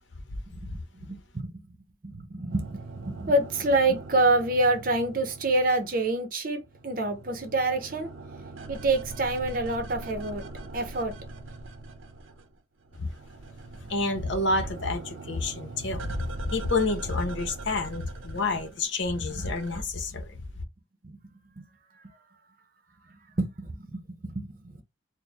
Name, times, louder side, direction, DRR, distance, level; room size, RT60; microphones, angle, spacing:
voice 1, 0.5-1.8 2.0-8.1 8.7-10.4 10.7-11.1 19.3-19.5 21.0-21.2 21.6-21.7 22.0-22.1 23.1-24.8, right 2 dB, 45° right, 0.8 m, -27 dB
sound 1, 2.5-6.3 6.6-12.5 12.8-19.8, right 2 dB, 80° right, 0.7 m, -42 dB
voice 2, 13.9-20.4, left 2 dB, 65° left, 0.8 m, -29 dB
4.4 x 2.2 x 3.4 m
head